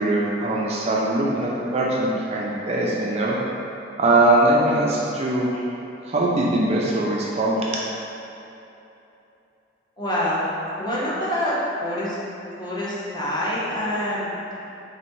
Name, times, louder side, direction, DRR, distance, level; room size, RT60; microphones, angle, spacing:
voice 1, 0.0-3.4 4.0-5.6 6.1-7.8, right 2 dB, 35° right, -4 dB, 0.4 m, -21 dB
voice 2, 10.0-10.4 10.8-11.6 11.8-12.2 12.6-14.3, left 1 dB, 25° left, -8 dB, 0.9 m, -26 dB
4.1 x 2.7 x 4.5 m, 2.9 s
head